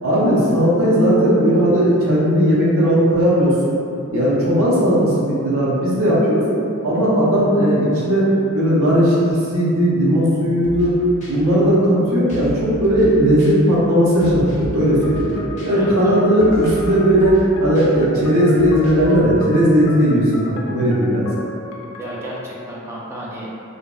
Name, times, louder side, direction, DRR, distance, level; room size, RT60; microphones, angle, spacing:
voice 1, 0.0-3.5 4.1-6.4 6.8-8.2 8.5-10.9 11.3-15.2 15.6-21.5, equal, 80° right, -7 dB, 0.7 m, -16 dB
sound 1, 10.6-10.9 11.2-11.3 12.3-12.6 12.8-13.1 13.4-13.5 14.2-14.7 15.0-15.3 15.6-15.7 16.4-16.9 17.2-17.5 17.7-17.9 18.6-19.1, right 1 dB, 35° left, 0.6 m, -32 dB
sound 2, 15.0-22.4, left 2 dB, 80° left, 0.3 m, -35 dB
voice 2, 15.7-16.2 22.0-23.6, right 1 dB, 15° right, -6 dB, 0.3 m, -32 dB
2.6 x 2.1 x 2.3 m, 2.7 s
head